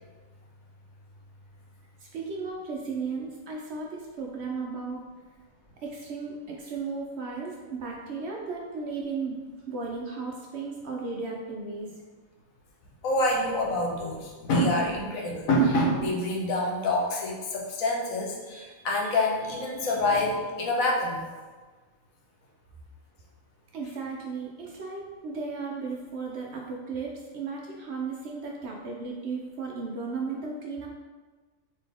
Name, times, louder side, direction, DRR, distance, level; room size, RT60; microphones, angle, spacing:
voice 1, 2.0-5.1 5.8-9.4 9.7-12.0 23.7-30.9, right 4 dB, 65° right, -1 dB, 0.7 m, -35 dB
voice 2, 13.0-21.3, left 1 dB, 80° left, -1 dB, 1.1 m, -26 dB
3.9 x 2.8 x 3.4 m, 1.4 s
omnidirectional pair, 1.4 m